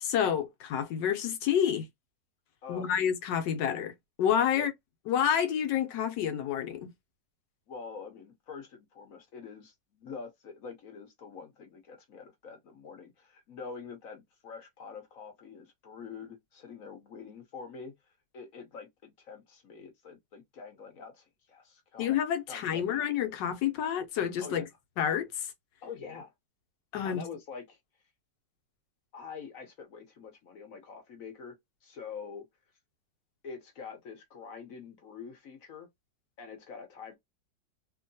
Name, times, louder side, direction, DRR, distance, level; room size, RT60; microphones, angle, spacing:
voice 1, 0.0-1.9 2.7-4.7 5.1-6.9 22.0-24.6 25.0-25.5 26.9-27.3, left 9 dB, 80° left, 1.4 m, -29 dB
voice 2, 2.6-2.9 4.5-4.7 7.7-17.9 18.3-22.1 22.5-23.0 24.4-24.6 25.8-26.3 27.0-27.8 29.1-31.6 31.8-32.5 33.4-35.9 36.4-37.2, left 5 dB, 60° left, 1.1 m, -45 dB
2.9 x 2.7 x 2.6 m
omnidirectional pair, 1.9 m